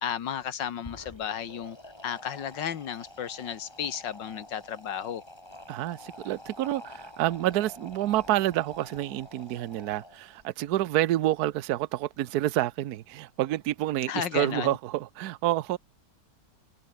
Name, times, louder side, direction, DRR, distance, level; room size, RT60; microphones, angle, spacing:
voice 1, 0.0-1.8 2.0-5.2 14.1-14.8, left 9 dB, 85° left, 2.0 m, -33 dB
sound 1, 0.7-10.4, left 1 dB, 15° left, 3.6 m, -48 dB
voice 2, 5.7-15.8, right 14 dB, 65° right, 1.2 m, -28 dB
open air
omnidirectional pair, 1.9 m